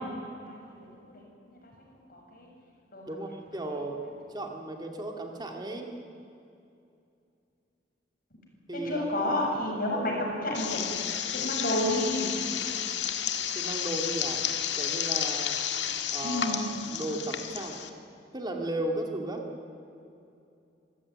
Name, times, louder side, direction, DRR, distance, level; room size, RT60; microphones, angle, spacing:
voice 1, 0.5-1.7 2.1-2.5 2.9-3.0 8.7-10.9 11.3-12.3 16.2-16.7, left 1 dB, 55° left, 0 dB, 6.7 m, -31 dB
voice 2, 3.1-4.0 4.3-5.9 8.7-9.3 9.6-10.2 13.5-14.4 14.8-15.6 16.1-17.9 18.3-19.5, right 1 dB, 25° right, 3 dB, 2.1 m, -35 dB
sound 1, 10.5-17.9, left 9 dB, 85° left, 1.7 m, -31 dB
26.0 x 15.0 x 9.6 m, 2.6 s
head